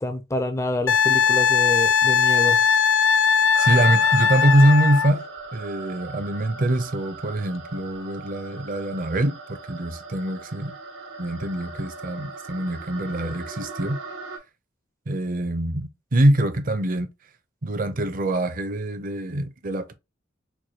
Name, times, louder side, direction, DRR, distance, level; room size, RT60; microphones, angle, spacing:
voice 1, 0.0-2.6, left 1 dB, 15° left, 0.4 m, -27 dB
Wind instrument woodwind instrument, 0.9-5.1 7.8-7.9, left 6 dB, 85° left, 0.5 m, -19 dB
sound 1, 3.5-14.4, right 4 dB, 85° right, 1.1 m, -39 dB
voice 2, 3.6-5.2 5.5-10.8 11.2-14.0 15.1-17.1 17.6-19.9, right 1 dB, 45° right, 0.6 m, -23 dB
4.6 x 2.2 x 2.8 m
head